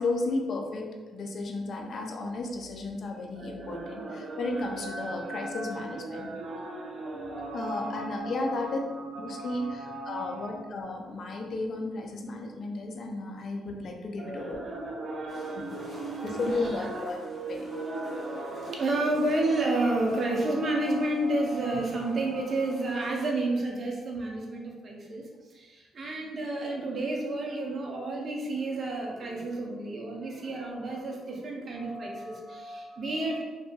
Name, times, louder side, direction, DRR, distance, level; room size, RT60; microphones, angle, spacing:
voice 1, 0.0-6.3 7.5-8.8 9.2-14.6 16.2-17.2 17.5-17.6, left 2 dB, 55° left, 2 dB, 0.4 m, -33 dB
voice 2, 3.4-10.6 14.2-25.2 25.5-33.4, right 2 dB, 45° right, 0 dB, 0.6 m, -32 dB
sound 1, 15.3-23.3, equal, 10° right, 1.2 m, -48 dB
Wind instrument woodwind instrument, 19.7-24.9, left 4 dB, 75° right, 1.0 m, -57 dB
2.7 x 2.5 x 2.3 m, 1.3 s
cardioid pair, 90°, 0 cm